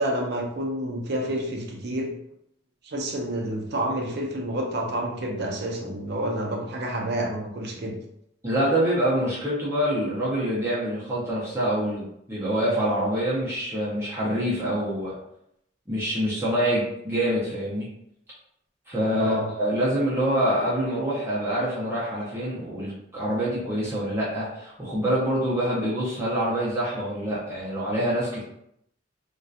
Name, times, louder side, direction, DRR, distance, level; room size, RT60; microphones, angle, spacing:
voice 1, 0.0-2.1 2.8-7.9 19.2-19.5, right 1 dB, 60° right, 0 dB, 0.5 m, -29 dB
voice 2, 8.4-15.1 15.9-17.9 18.9-28.4, equal, 15° right, -9 dB, 0.6 m, -26 dB
2.7 x 2.3 x 2.4 m, 0.77 s
head